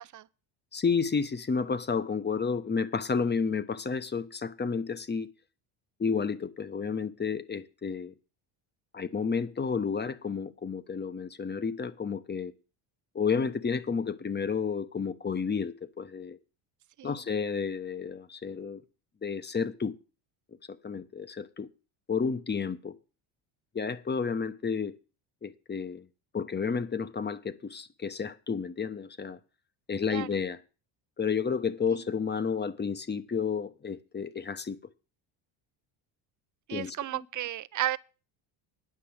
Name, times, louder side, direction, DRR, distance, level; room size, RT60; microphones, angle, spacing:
voice 1, 0.7-5.3 6.0-8.1 8.9-12.5 13.1-16.4 17.0-18.8 19.2-19.9 20.7-21.7 22.1-22.9 23.7-24.9 25.4-26.1 26.3-29.4 29.9-30.6 31.2-34.8 36.7-36.9, left 5 dB, 20° left, 0.9 m, -31 dB
voice 2, 36.7-38.0, right 13 dB, 40° right, 0.6 m, -33 dB
9.9 x 5.9 x 8.6 m
cardioid pair, 100°, 49 cm